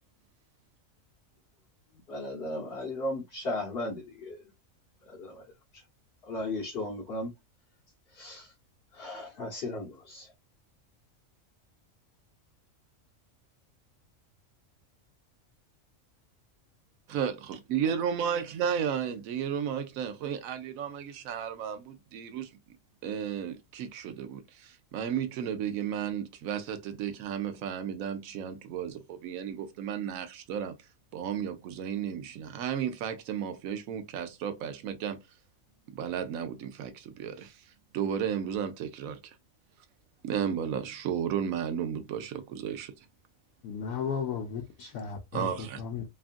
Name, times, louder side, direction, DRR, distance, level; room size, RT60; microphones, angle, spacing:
voice 1, 2.1-4.4 5.1-5.4 5.7-5.8 6.2-7.3 8.1-8.5 8.9-10.3, left 1 dB, 50° left, 1.0 m, -36 dB
voice 2, 17.1-22.5 23.0-30.7 31.1-35.2 35.9-37.5 37.9-39.3 40.2-42.9 45.3-45.8, right 8 dB, 80° right, 1.0 m, -33 dB
voice 3, 43.6-46.0, left 6 dB, 75° left, 1.0 m, -35 dB
2.9 x 2.4 x 2.4 m
omnidirectional pair, 1.4 m